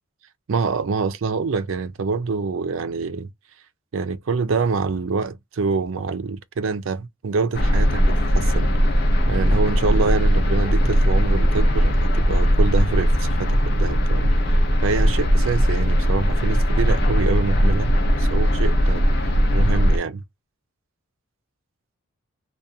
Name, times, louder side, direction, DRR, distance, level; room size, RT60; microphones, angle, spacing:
voice 1, 0.5-3.3 3.9-8.7 9.3-14.3 14.8-19.1 19.5-20.2, right 4 dB, 65° right, 0.4 m, -26 dB
sound 1, 7.5-20.0, equal, 50° left, 0.5 m, -19 dB
2.4 x 2.2 x 2.7 m
head